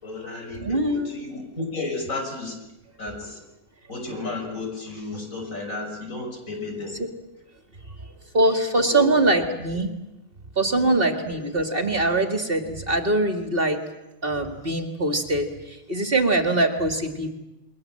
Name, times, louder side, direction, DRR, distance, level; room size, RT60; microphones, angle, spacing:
voice 1, 0.0-2.6 3.0-3.4 3.9-7.0 8.9-9.1 10.7-11.0, left 3 dB, 60° left, 2 dB, 6.2 m, -33 dB
voice 2, 0.5-1.2 8.3-9.9 10.6-13.8 14.2-17.3, right 2 dB, 40° right, 6 dB, 2.0 m, -23 dB
28.5 x 22.0 x 7.6 m, 1.0 s
omnidirectional pair, 1.6 m